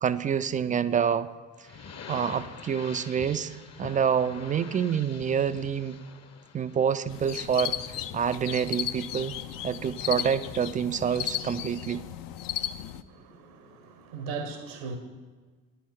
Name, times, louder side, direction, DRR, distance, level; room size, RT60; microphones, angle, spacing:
voice 1, 0.0-1.3 2.1-6.0 6.5-7.8 8.1-9.3 9.6-12.0, right 7 dB, 20° right, 13 dB, 0.3 m, -27 dB
sound 1, 1.6-8.3, left 6 dB, 40° left, 0.9 m, -45 dB
sound 2, 7.1-13.0, left 11 dB, 55° left, 0.6 m, -35 dB
voice 2, 13.1-15.0, right 4 dB, 75° right, 7 dB, 1.0 m, -38 dB
9.9 x 5.7 x 6.2 m, 1.4 s
hypercardioid pair, 50°, 42 cm